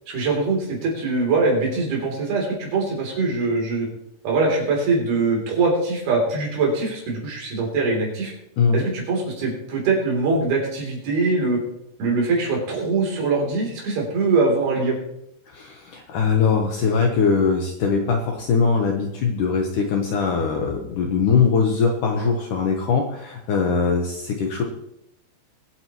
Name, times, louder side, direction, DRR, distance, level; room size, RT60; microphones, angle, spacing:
voice 1, 0.1-3.9 4.2-8.3 8.7-11.6 12.0-15.0, right 3 dB, 65° right, -2 dB, 5.2 m, -22 dB
voice 2, 15.5-24.6, left 5 dB, 65° left, 1 dB, 2.2 m, -21 dB
22.0 x 8.7 x 3.1 m, 0.80 s
omnidirectional pair, 4.8 m